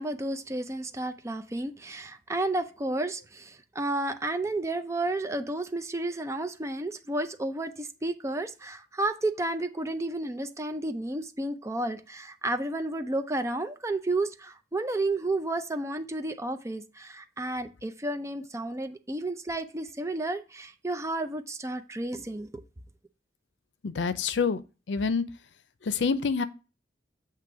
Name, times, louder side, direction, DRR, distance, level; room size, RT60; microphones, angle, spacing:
voice 1, 0.0-22.6, right 2 dB, 15° right, 0.5 m, -32 dB
voice 2, 23.8-24.6 24.9-25.2 25.8-26.4, left 5 dB, 85° left, 0.5 m, -26 dB
7.7 x 2.9 x 4.6 m
head